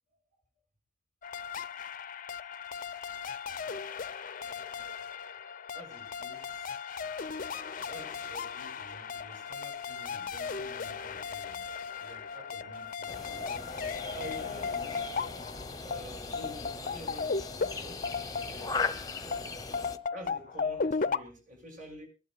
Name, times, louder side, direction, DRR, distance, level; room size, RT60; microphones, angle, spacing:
sound 1, 1.2-18.9 19.3-21.2, left 5 dB, 45° left, 0.6 m, -36 dB
voice 1, 5.7-6.7 7.5-11.6 12.0-13.5 14.1-15.1 15.8-18.1 18.5-19.5 19.8-22.1, equal, 45° right, 6.7 m, -49 dB
sound 2, 13.1-20.0, left 4 dB, 20° left, 0.9 m, -38 dB
24.0 x 11.5 x 2.4 m
head